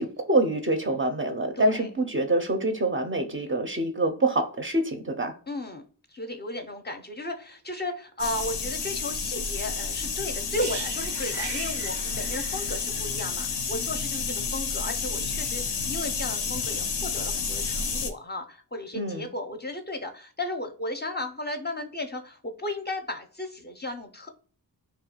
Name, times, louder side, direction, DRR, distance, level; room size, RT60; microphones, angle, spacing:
voice 1, 0.0-5.3 18.9-19.3, right 1 dB, 30° right, 0.5 m, -26 dB
voice 2, 1.6-1.9 5.5-5.8 6.1-24.3, left 1 dB, 25° left, 0.5 m, -35 dB
sound 1, 8.2-18.1, left 5 dB, 90° left, 0.5 m, -30 dB
sound 2, 10.5-14.4 14.7-14.9, right 5 dB, 90° right, 0.6 m, -40 dB
2.3 x 2.2 x 2.8 m
cardioid pair, 50°, 39 cm